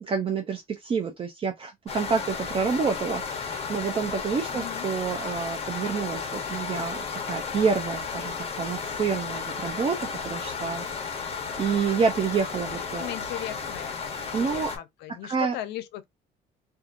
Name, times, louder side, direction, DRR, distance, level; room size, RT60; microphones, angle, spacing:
voice 1, 0.0-10.0 10.2-13.1 14.3-14.7 15.2-15.5, right 5 dB, 35° right, 0.5 m, -28 dB
sound 1, 1.9-14.8, left 5 dB, 35° left, 0.8 m, -33 dB
voice 2, 4.5-4.9 13.0-14.0 14.4-16.0, left 13 dB, 85° left, 0.5 m, -37 dB
2.7 x 2.3 x 2.5 m
cardioid pair, 110°, 17 cm